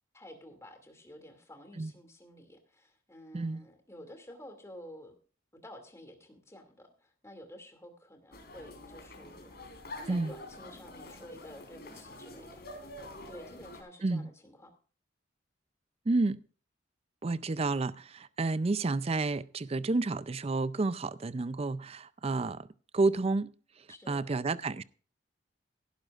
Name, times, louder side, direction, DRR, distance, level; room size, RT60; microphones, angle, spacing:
voice 1, 0.1-5.2 5.6-9.5 10.0-14.7 23.9-24.6, equal, 15° left, 2.4 m, -51 dB
sound 1, 8.3-13.8, left 1 dB, 55° left, 3.9 m, -47 dB
voice 2, 16.1-16.4 17.2-22.7 22.9-23.5 23.8-24.8, right 3 dB, 30° right, 0.4 m, -30 dB
17.0 x 11.5 x 2.5 m
head